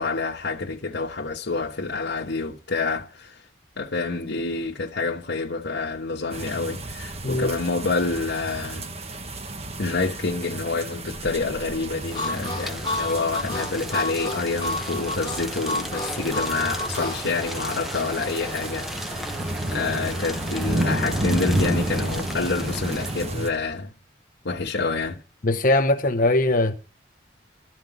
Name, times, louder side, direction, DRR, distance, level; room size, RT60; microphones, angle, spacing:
voice 1, 0.0-3.4 3.8-8.9 9.8-19.3 19.7-23.9 24.4-25.2, left 3 dB, 75° left, 1.3 m, -28 dB
sound 1, 6.3-23.5, right 1 dB, 35° right, 1.2 m, -31 dB
sound 2, 12.0-23.5, equal, ahead, 0.9 m, -36 dB
Harmonica, 12.1-17.2, left 2 dB, 25° left, 1.7 m, -30 dB
voice 2, 25.4-26.7, left 2 dB, 45° left, 0.8 m, -20 dB
13.5 x 5.9 x 9.1 m
head